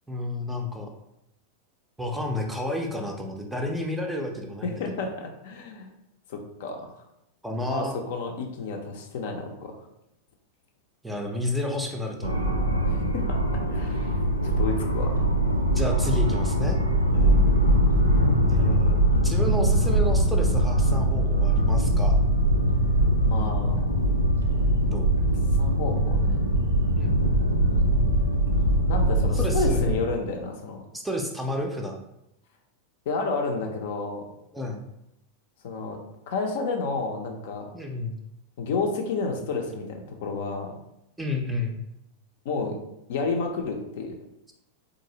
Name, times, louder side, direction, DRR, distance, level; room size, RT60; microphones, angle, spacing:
voice 1, 0.1-0.9 2.0-5.0 7.4-7.9 11.0-12.6 15.7-16.8 18.5-19.0 19.2-22.1 24.8-25.1 27.0-27.2 29.3-30.0 30.9-32.0 34.5-34.9 37.7-38.2 41.2-41.8, left 1 dB, 5° right, 1 dB, 0.5 m, -31 dB
voice 2, 4.6-5.9 6.3-6.9 7.7-9.7 12.9-13.4 13.7-14.2 14.4-15.3 17.1-17.4 23.3-24.0 25.5-26.4 28.9-30.8 33.1-34.3 35.6-36.0 36.3-37.7 38.6-40.7 42.4-42.8 43.1-44.2, left 4 dB, 55° left, 3 dB, 0.5 m, -31 dB
sound 1, 12.2-30.0, right 1 dB, 85° right, 0.4 m, -22 dB
3.9 x 2.6 x 2.8 m, 0.83 s
figure-of-eight pair, 90°, 0 cm